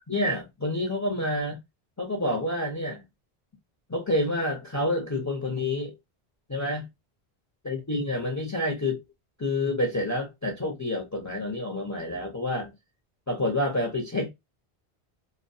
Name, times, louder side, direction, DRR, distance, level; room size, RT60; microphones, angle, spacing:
voice 1, 0.1-1.6 2.0-3.0 3.9-5.9 6.5-6.9 7.6-9.0 9.4-12.7 13.3-14.3, left 1 dB, 20° left, 0.6 m, -28 dB
2.4 x 2.2 x 2.6 m
omnidirectional pair, 1.0 m